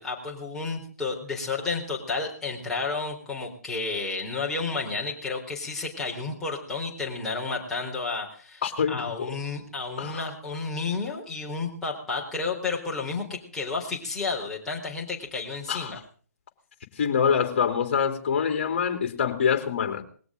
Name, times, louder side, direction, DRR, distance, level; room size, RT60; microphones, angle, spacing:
voice 1, 0.0-8.6 8.9-16.0, left 4 dB, 5° left, 4.0 m, -31 dB
voice 2, 8.6-9.4 10.0-10.3 15.7-15.9 17.0-20.0, left 7 dB, 40° left, 3.1 m, -25 dB
20.5 x 17.5 x 3.9 m
figure-of-eight pair, 140°, 9 cm